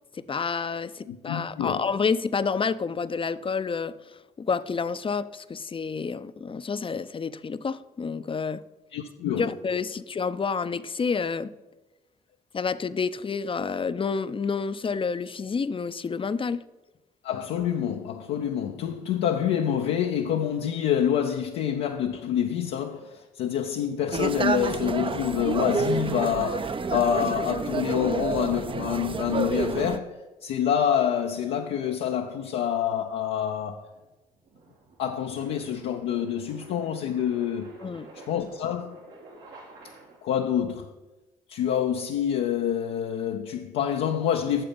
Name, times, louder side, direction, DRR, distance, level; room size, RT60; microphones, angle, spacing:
voice 1, 0.1-8.6 9.4-11.5 12.5-16.6 37.8-38.1, left 5 dB, 30° left, 0.5 m, -29 dB
voice 2, 1.1-1.8 8.9-9.5 17.2-33.9 35.0-37.7 38.3-39.0 40.2-40.9 41.5-44.6, left 9 dB, 80° left, 0.6 m, -27 dB
sound 1, 24.1-30.0, right 4 dB, 30° right, 0.5 m, -29 dB
sound 2, 33.9-40.4, right 2 dB, 80° right, 2.3 m, -50 dB
8.8 x 6.8 x 5.2 m
supercardioid pair, 55°, 18 cm